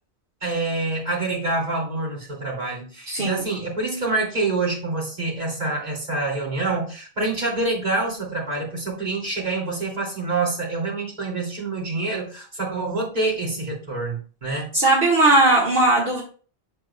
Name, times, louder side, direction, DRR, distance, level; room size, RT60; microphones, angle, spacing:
voice 1, 0.4-14.7, right 3 dB, 40° right, -3 dB, 2.7 m, -26 dB
voice 2, 3.1-3.5 14.7-16.2, right 2 dB, 65° right, -4 dB, 1.8 m, -18 dB
7.8 x 7.4 x 2.2 m, 0.39 s
omnidirectional pair, 1.1 m